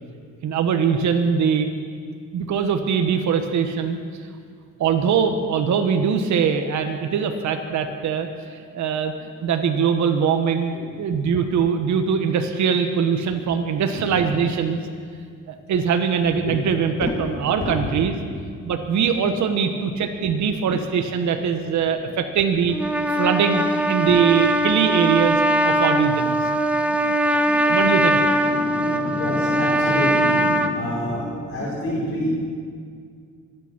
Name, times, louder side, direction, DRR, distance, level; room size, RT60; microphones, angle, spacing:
voice 1, 0.4-1.7 2.3-4.0 4.8-14.8 15.5-18.1 18.6-22.7 23.1-26.4 27.7-28.2, right 6 dB, 70° right, 5 dB, 1.3 m, -22 dB
voice 2, 17.6-17.9 20.7-20.8 25.8-25.9 26.4-32.3, left 1 dB, 45° left, -6 dB, 5.4 m, -29 dB
Trumpet, 22.7-30.7, right 1 dB, 5° right, 1.1 m, -21 dB
24.5 x 9.2 x 6.1 m, 2.1 s
cardioid pair, 90°, 30 cm